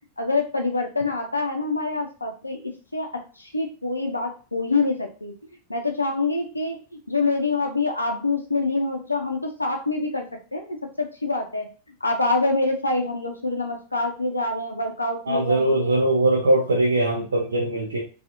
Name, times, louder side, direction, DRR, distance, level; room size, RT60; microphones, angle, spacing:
voice 1, 0.2-5.3 5.7-6.8 7.1-10.3 10.5-11.7 12.0-16.0, left 3 dB, 85° left, 3 dB, 0.5 m, -26 dB
voice 2, 15.3-18.0, right 1 dB, 70° right, -3 dB, 0.7 m, -21 dB
2.7 x 2.4 x 2.5 m, 0.36 s
figure-of-eight pair, 90°, 0 cm